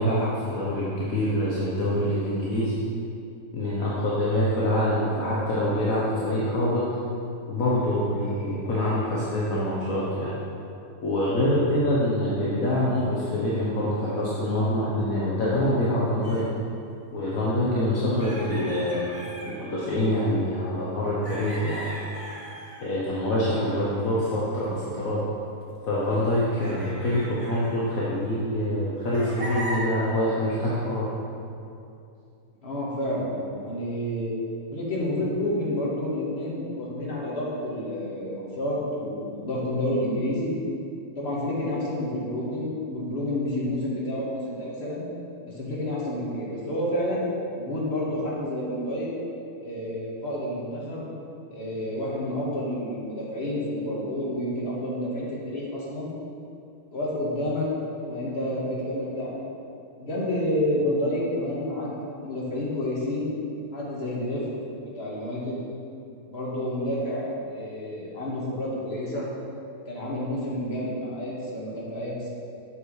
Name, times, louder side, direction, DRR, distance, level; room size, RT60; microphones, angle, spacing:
voice 1, 0.0-2.8 3.5-6.8 7.5-10.4 11.0-16.4 17.1-21.9 22.8-25.2 25.9-31.1, left 1 dB, 60° left, -7 dB, 1.5 m, -25 dB
sound 1, 16.2-16.5 18.2-19.6 21.2-23.5 24.6-24.9 25.6-25.7 26.6-28.7 29.1-29.8, right 1 dB, 25° right, 1.2 m, -38 dB
voice 2, 32.6-34.3 34.7-40.5 41.2-45.1 45.4-47.2 47.6-49.1 49.6-51.0 51.5-56.1 56.9-57.7 58.1-59.3 60.0-61.9 62.2-63.3 63.7-64.4 65.0-65.6 66.3-69.3 69.9-72.3, left 1 dB, 40° left, -6 dB, 2.1 m, -29 dB
7.8 x 7.1 x 4.8 m, 2.6 s
omnidirectional pair, 1.6 m